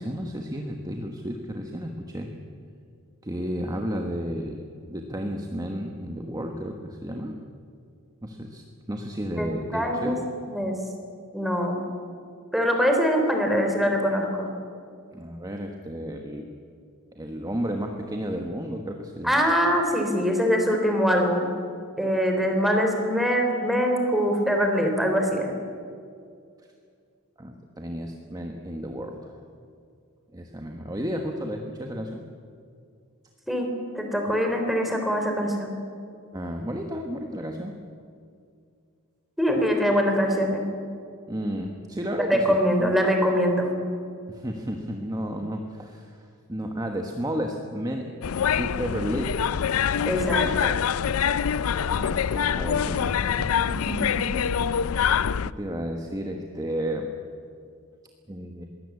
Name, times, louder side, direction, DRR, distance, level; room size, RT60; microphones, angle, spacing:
voice 1, 0.0-2.3 3.2-7.4 8.2-10.3 15.1-16.5 17.1-19.3 27.4-29.4 30.3-32.2 36.3-37.7 39.5-39.7 41.3-42.9 44.3-48.1 48.6-49.6 50.3-50.7 51.8-53.8 55.4-57.1 58.3-58.7, equal, 15° right, 3 dB, 1.3 m, -32 dB
voice 2, 9.4-10.2 10.5-10.8 11.3-11.8 12.5-14.5 19.2-21.5 22.0-25.5 33.5-35.7 39.4-40.6 42.3-43.7 50.0-50.7 53.7-54.5, equal, ahead, 2 dB, 3.4 m, -23 dB
sound 1, 48.2-55.5, left 7 dB, 70° left, 0.4 m, -25 dB
21.5 x 16.5 x 8.4 m, 2.3 s
head